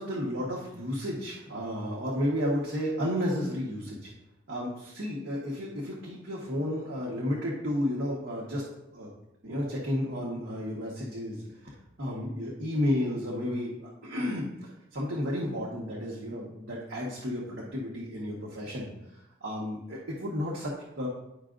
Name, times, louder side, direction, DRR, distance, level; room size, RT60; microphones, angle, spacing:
voice 1, 0.0-4.1 4.5-8.6 8.9-9.1 9.4-18.9 19.4-21.1, left 1 dB, 85° right, -6 dB, 1.4 m, -32 dB
11.0 x 4.9 x 2.6 m, 0.91 s
head